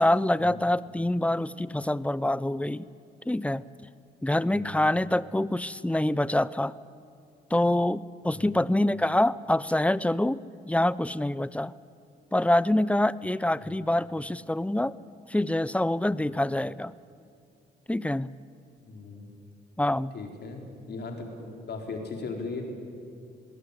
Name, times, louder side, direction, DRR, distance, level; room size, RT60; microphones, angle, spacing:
voice 1, 0.0-2.9 3.3-3.6 4.2-6.8 7.5-11.7 12.3-14.9 15.3-16.9 17.9-18.3 19.8-20.1, left 1 dB, 5° left, 19 dB, 0.7 m, -26 dB
voice 2, 4.5-4.9 8.3-8.6 13.6-13.8 18.8-19.3 20.1-22.6, left 4 dB, 60° left, 3 dB, 4.2 m, -38 dB
20.5 x 17.5 x 10.0 m, 2.4 s
supercardioid pair, 60°, 19 cm